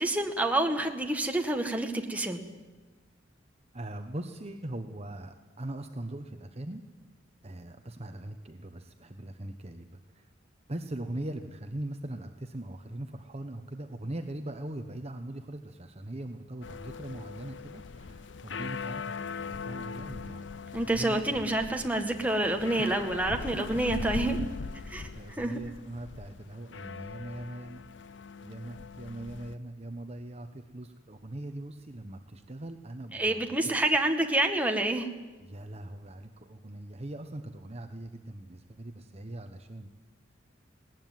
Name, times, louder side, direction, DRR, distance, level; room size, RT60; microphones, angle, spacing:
voice 1, 0.0-2.4 20.7-24.4 24.9-25.6 33.1-35.1, right 1 dB, 10° right, 3 dB, 1.9 m, -28 dB
voice 2, 3.7-6.8 7.4-10.3 10.7-20.7 20.9-21.5 24.8-27.9 28.4-33.8 35.4-39.9, right 1 dB, 35° right, 6 dB, 1.1 m, -41 dB
sound 1, 16.6-29.5, left 4 dB, 65° left, 0.6 m, -40 dB
19.5 x 18.5 x 9.4 m, 1.3 s
head